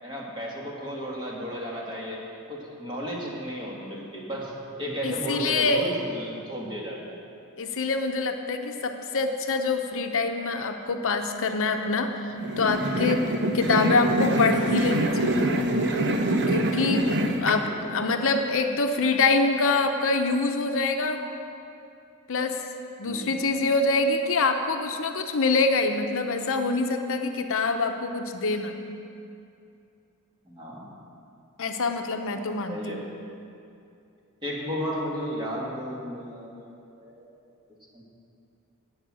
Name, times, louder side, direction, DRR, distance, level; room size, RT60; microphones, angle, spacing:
voice 1, 0.0-7.2 17.1-18.2 23.0-23.4 30.5-30.9 32.7-33.0 34.4-36.7 37.0-37.3 37.9-38.0, equal, 20° right, -3 dB, 2.6 m, -34 dB
voice 2, 5.0-5.9 7.6-13.3 13.5-15.4 16.5-17.1 17.4-21.2 22.3-22.6 23.0-28.8 31.6-33.0, left 3 dB, 65° left, 5 dB, 0.9 m, -25 dB
sound 1, 12.4-17.5, right 1 dB, 50° right, 1.0 m, -25 dB
19.0 x 8.2 x 6.3 m, 2.6 s
head